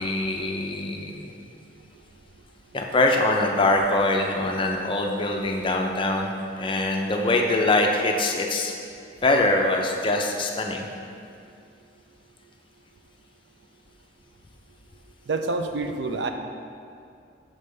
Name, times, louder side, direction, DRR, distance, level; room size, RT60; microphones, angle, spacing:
voice 1, 0.0-1.3 2.7-8.7 9.2-10.9, left 2 dB, 25° left, 2 dB, 0.4 m, -23 dB
voice 2, 15.3-16.3, right 3 dB, 65° right, 6 dB, 0.4 m, -27 dB
6.4 x 3.2 x 5.3 m, 2.4 s
head